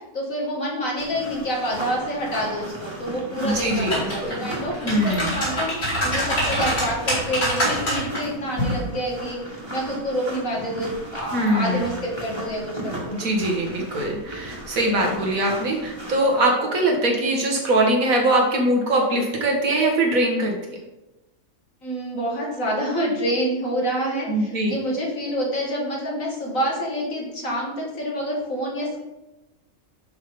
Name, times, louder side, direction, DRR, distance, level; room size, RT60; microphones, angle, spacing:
voice 1, 0.1-9.4 9.7-13.2 21.8-29.0, equal, 60° left, -3 dB, 2.5 m, -27 dB
sound 1, 1.0-16.4, right 1 dB, 20° right, 1.8 m, -36 dB
sound 2, 3.4-4.3 4.7-8.2 8.6-8.8, equal, 80° left, 4.0 m, -25 dB
voice 2, 3.4-4.5 4.8-5.4 11.3-11.8 13.1-20.8 24.3-24.8, right 1 dB, 65° right, 1 dB, 2.1 m, -22 dB
11.0 x 3.8 x 5.2 m, 1.0 s
omnidirectional pair, 1.6 m